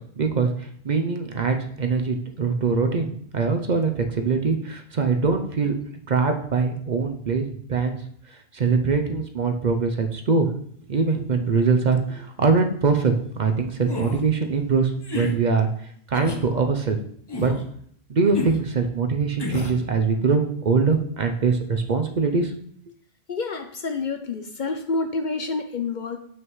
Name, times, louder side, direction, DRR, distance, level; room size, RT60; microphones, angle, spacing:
voice 1, 0.2-5.7 6.1-8.0 8.3-10.5 10.9-17.0 17.4-17.5 18.1-22.6, right 4 dB, 50° right, 5 dB, 0.7 m, -23 dB
sound 1, 13.9-14.2 15.0-15.3 16.1-16.4 17.3-17.6 18.3-18.6 19.4-19.8, left 2 dB, 25° left, 0.9 m, -30 dB
voice 2, 23.3-26.2, left 3 dB, 55° left, 6 dB, 0.6 m, -28 dB
7.5 x 6.2 x 3.1 m, 0.63 s
omnidirectional pair, 1.1 m